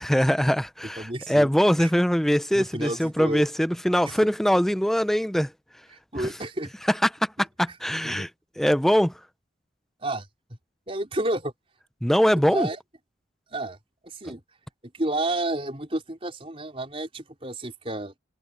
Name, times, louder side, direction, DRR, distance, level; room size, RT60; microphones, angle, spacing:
voice 1, 0.0-5.5 7.0-7.3 7.6-8.3 8.6-9.1 12.0-12.7, equal, ahead, 0.6 m, -22 dB
voice 2, 0.8-1.5 1.8-1.9 2.5-3.5 4.0-4.2 6.1-6.7 8.0-8.3 10.0-10.3 10.9-11.5 12.5-12.8 13.5-13.8 14.0-14.4 14.8-18.1, right 1 dB, 30° right, 4.6 m, -30 dB
head